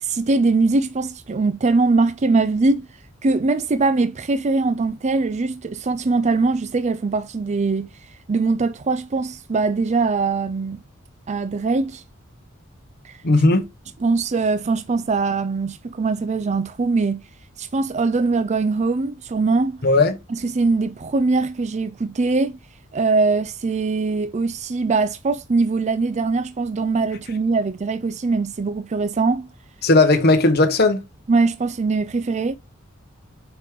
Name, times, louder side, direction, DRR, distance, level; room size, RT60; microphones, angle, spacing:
voice 1, 0.0-2.9 3.2-7.9 8.3-10.8 11.3-12.0 13.0-13.2 14.0-17.2 17.6-19.8 20.3-22.5 22.9-29.5 31.3-32.6, right 3 dB, 35° right, 0.5 m, -21 dB
voice 2, 13.2-13.6 19.8-20.2 29.8-31.0, left 2 dB, 50° left, 1.2 m, -16 dB
7.7 x 4.9 x 3.7 m
head